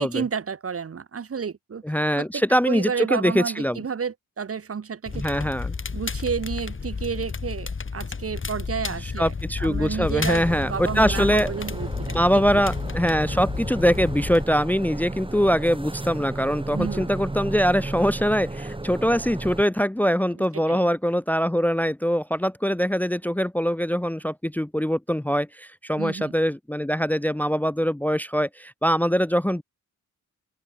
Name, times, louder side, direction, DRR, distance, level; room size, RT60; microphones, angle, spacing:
voice 1, 0.0-1.8 2.2-5.2 5.9-9.3 9.6-12.4 16.7-17.1 20.5-20.8 26.0-26.3, right 6 dB, 45° right, 1.3 m, -31 dB
voice 2, 1.8-3.8 5.1-5.7 9.0-11.5 12.1-29.6, equal, 5° left, 0.8 m, -23 dB
Crackle, 5.1-14.4, left 4 dB, 40° left, 2.8 m, -31 dB
sound 1, 10.4-19.6, right 2 dB, 15° right, 3.2 m, -34 dB
open air
cardioid pair, 80°, 31 cm